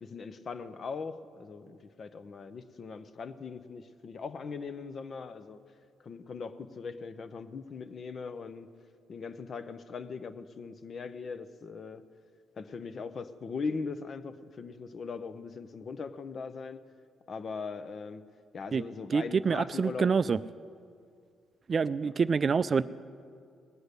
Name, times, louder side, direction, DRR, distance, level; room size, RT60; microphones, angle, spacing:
voice 1, 0.0-5.6 6.0-8.7 9.1-12.0 12.6-16.8 17.3-18.3 18.5-20.4, left 5 dB, 50° left, 11 dB, 0.7 m, -40 dB
voice 2, 19.1-20.4 21.7-22.8, right 5 dB, 40° right, 14 dB, 0.3 m, -26 dB
19.0 x 8.1 x 6.7 m, 2.2 s
cardioid pair, 90°, 0 cm